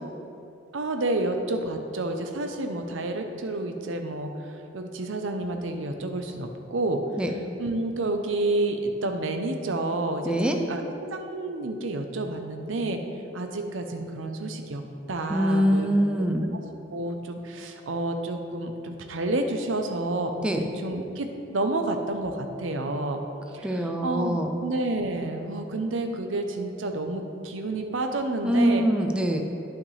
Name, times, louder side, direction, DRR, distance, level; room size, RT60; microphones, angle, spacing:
voice 1, 0.7-4.3 4.7-7.0 7.6-13.0 13.3-14.8 15.1-15.9 16.9-23.2 23.5-28.8, right 2 dB, 85° right, 5 dB, 0.7 m, -29 dB
voice 2, 10.2-10.6 15.3-16.5 20.4-20.6 23.6-24.6 28.4-29.4, equal, 5° right, 2 dB, 0.5 m, -23 dB
10.5 x 5.9 x 3.3 m, 2.8 s
head